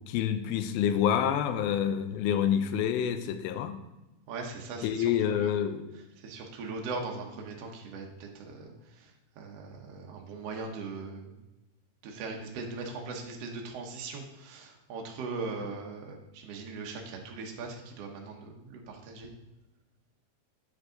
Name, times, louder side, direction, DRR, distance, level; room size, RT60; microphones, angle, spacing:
voice 1, 0.1-3.8 4.8-6.0, left 9 dB, 80° left, 9 dB, 2.4 m, -28 dB
voice 2, 4.3-5.1 5.4-5.5 6.2-11.3 12.0-19.3, right 4 dB, 85° right, 1 dB, 1.4 m, -40 dB
9.6 x 5.0 x 3.8 m, 0.97 s
omnidirectional pair, 4.4 m